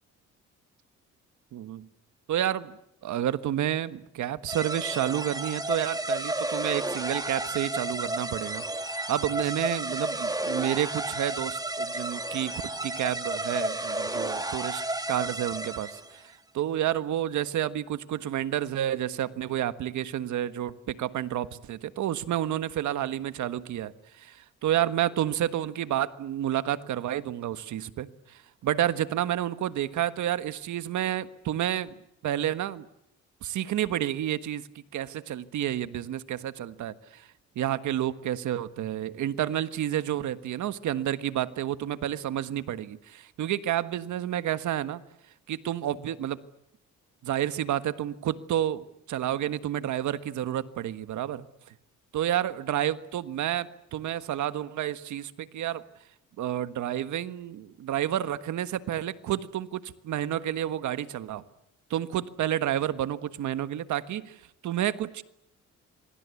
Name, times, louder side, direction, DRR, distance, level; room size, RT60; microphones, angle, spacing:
voice 1, 1.5-1.9 2.3-14.8 15.1-32.8 33.4-34.7 34.9-37.3 37.5-45.0 45.5-46.4 47.2-51.4 52.1-55.8 56.4-61.4 61.9-65.2, right 11 dB, 75° right, 13 dB, 1.5 m, -30 dB
sound 1, 4.5-16.2, right 2 dB, 10° right, 1.9 m, -32 dB
27.0 x 23.5 x 8.4 m, 0.77 s
cardioid pair, 90°, 30 cm